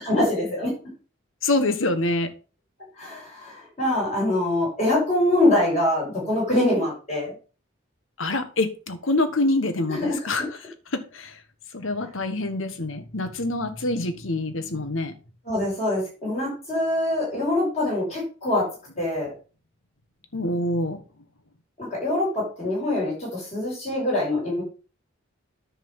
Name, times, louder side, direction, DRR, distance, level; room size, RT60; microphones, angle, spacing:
voice 1, 0.0-0.7 3.0-7.3 9.9-10.5 15.5-18.7 19.0-19.3 21.8-24.6, left 1 dB, 30° left, -4 dB, 5.5 m, -24 dB
voice 2, 1.4-2.3 8.2-10.5 10.9-11.4 11.7-15.2 20.3-21.0, left 2 dB, 70° left, 10 dB, 1.3 m, -26 dB
10.0 x 3.8 x 7.3 m, 0.35 s
head